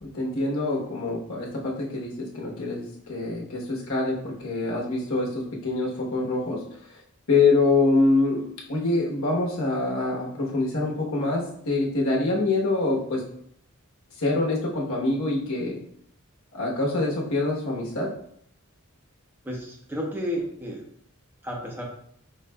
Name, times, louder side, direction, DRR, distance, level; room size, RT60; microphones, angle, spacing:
voice 1, 0.0-6.6 7.3-13.2 14.2-15.8 16.5-18.1, left 3 dB, 75° left, -3 dB, 1.1 m, -25 dB
voice 2, 19.4-20.8 21.4-21.8, equal, 10° right, -2 dB, 0.8 m, -32 dB
5.2 x 3.2 x 2.2 m, 0.67 s
head